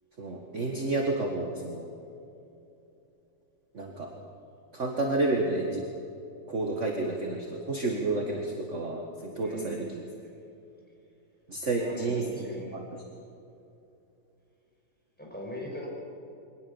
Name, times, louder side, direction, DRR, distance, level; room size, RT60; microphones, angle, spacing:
voice 1, 0.2-1.9 3.7-4.1 4.7-5.8 6.5-9.9 11.5-12.2 12.7-12.8, right 2 dB, 40° right, 1 dB, 1.9 m, -30 dB
voice 2, 9.4-9.8 11.7-12.7 15.2-15.9, equal, 5° left, -3 dB, 6.2 m, -39 dB
23.5 x 19.0 x 7.2 m, 2.8 s
omnidirectional pair, 2.2 m